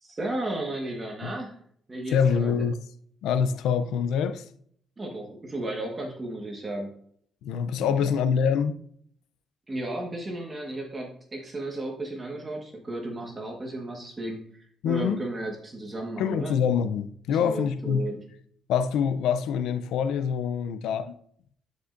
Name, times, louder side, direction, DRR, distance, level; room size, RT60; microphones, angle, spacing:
voice 1, 0.0-1.6 1.9-2.6 5.0-6.9 7.8-8.1 9.7-16.5 17.3-18.2, right 2 dB, 25° right, 1.4 m, -34 dB
voice 2, 2.1-2.8 3.2-4.4 7.4-8.8 14.8-15.2 16.2-18.1 18.7-21.2, left 7 dB, 85° left, 0.5 m, -25 dB
11.5 x 5.3 x 2.6 m
cardioid pair, 90°, 0 cm